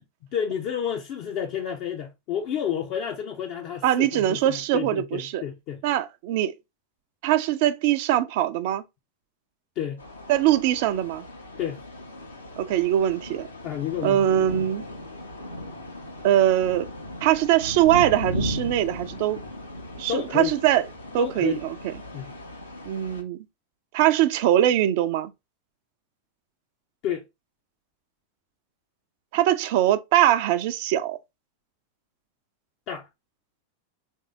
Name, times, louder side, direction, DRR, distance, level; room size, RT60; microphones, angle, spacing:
voice 1, 0.3-5.8 9.8-10.0 11.6-11.8 13.6-14.3 20.1-20.5 21.2-21.6 22.1-22.3 27.0-27.2 32.9-33.1, left 9 dB, 40° left, 0.5 m, -30 dB
voice 2, 3.8-5.4 5.8-6.5 7.2-8.8 10.3-11.3 12.6-13.5 14.0-14.8 16.2-16.9 17.2-19.4 20.0-20.8 21.1-21.5 22.9-23.4 23.9-25.3 29.3-31.2, right 12 dB, 50° right, 0.4 m, -22 dB
sound 1, 10.0-23.2, left 1 dB, 80° left, 0.8 m, -37 dB
3.2 x 2.7 x 3.6 m
figure-of-eight pair, 90°, 0 cm